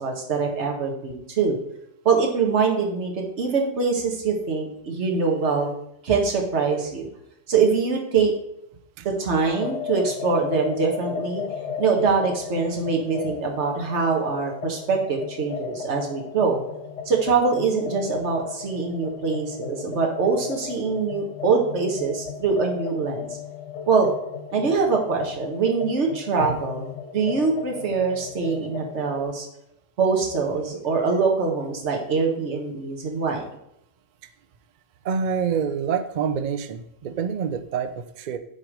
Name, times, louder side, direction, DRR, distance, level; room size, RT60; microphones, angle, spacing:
voice 1, 0.0-1.6 2.0-5.7 6.0-7.1 7.5-8.3 9.0-11.4 11.8-16.6 17.0-23.3 23.9-24.1 24.5-29.5 30.0-33.5, right 5 dB, 55° right, 1 dB, 1.4 m, -23 dB
sound 1, 9.5-29.3, left 7 dB, 65° left, 1.0 m, -35 dB
voice 2, 35.0-38.4, right 6 dB, 80° right, 9 dB, 0.4 m, -27 dB
7.5 x 3.1 x 5.1 m, 0.79 s
omnidirectional pair, 1.5 m